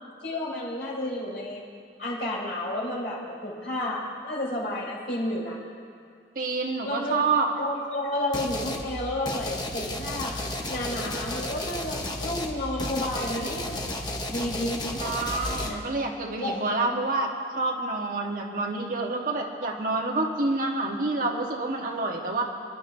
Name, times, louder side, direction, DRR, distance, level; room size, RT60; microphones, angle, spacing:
voice 1, 0.2-1.6 2.0-5.6 6.8-7.2 7.6-10.4 10.7-14.0 14.3-15.1 15.6-15.8 16.4-16.6, left 1 dB, 65° left, -5 dB, 3.8 m, -31 dB
voice 2, 6.3-7.5 15.0-22.4, right 3 dB, 50° right, 0 dB, 1.3 m, -28 dB
sound 1, 8.3-8.9 9.3-15.7, left 1 dB, 25° left, 1.0 m, -33 dB
28.0 x 11.0 x 2.7 m, 2.3 s
head